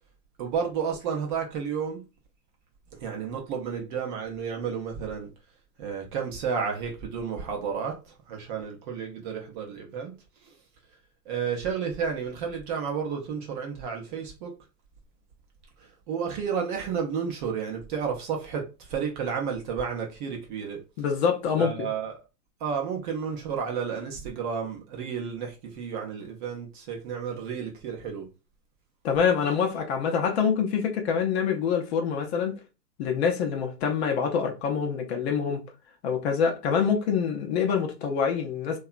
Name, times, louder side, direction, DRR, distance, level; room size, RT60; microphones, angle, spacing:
voice 1, 0.4-2.0 2.9-5.3 5.8-10.1 10.4-10.5 11.3-14.5 15.8-20.8 21.6-22.2 22.6-28.3, right 6 dB, 30° right, 0.6 m, -32 dB
voice 2, 21.0-21.9 29.0-32.5 33.0-35.6 36.0-38.8, left 6 dB, 45° left, 0.6 m, -25 dB
2.7 x 2.3 x 2.4 m
hypercardioid pair, 120°, 48 cm